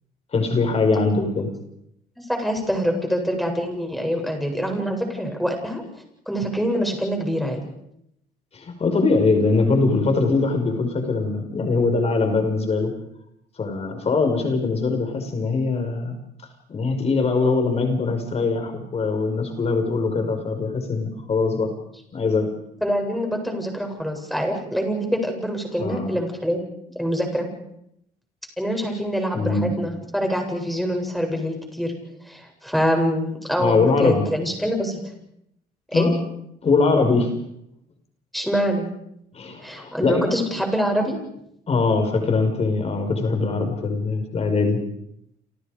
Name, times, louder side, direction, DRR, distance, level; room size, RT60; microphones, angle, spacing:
voice 1, 0.3-1.5 8.5-12.9 13.6-16.2 16.7-21.7 22.1-22.5 25.8-26.1 29.3-29.8 33.6-34.2 35.9-36.1 36.6-37.3 39.3-40.3 41.7-44.8, left 3 dB, 40° left, 5 dB, 5.6 m, -22 dB
voice 2, 2.2-5.8 6.3-7.7 22.8-26.6 27.0-27.5 28.6-31.9 32.2-35.0 35.9-36.1 38.3-38.9 39.6-41.1, equal, ahead, 3 dB, 7.9 m, -25 dB
29.5 x 28.0 x 5.2 m, 0.77 s
cardioid pair, 110°, 17 cm